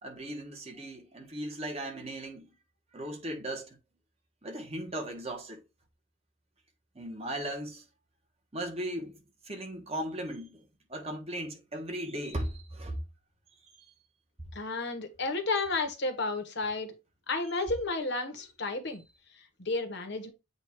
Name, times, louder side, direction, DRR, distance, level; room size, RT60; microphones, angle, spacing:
voice 1, 0.0-2.5 2.9-3.8 4.4-5.6 6.9-7.8 8.5-13.0, right 1 dB, 30° right, 1.4 m, -37 dB
voice 2, 14.5-16.9 17.3-19.0 19.6-20.3, left 3 dB, 55° left, 1.3 m, -32 dB
8.0 x 2.7 x 4.6 m
head